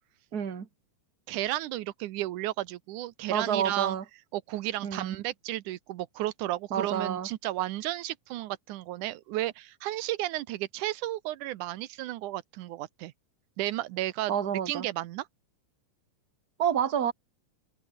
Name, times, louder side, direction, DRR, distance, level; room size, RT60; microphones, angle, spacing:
voice 1, 0.3-0.7 3.3-4.0 4.8-5.1 6.7-7.3 14.3-14.9 16.6-17.1, right 8 dB, 35° right, 2.1 m, -28 dB
voice 2, 1.3-4.0 4.3-13.1 13.6-14.3 14.7-15.3, right 15 dB, 85° right, 2.4 m, -33 dB
omnidirectional pair, 3.5 m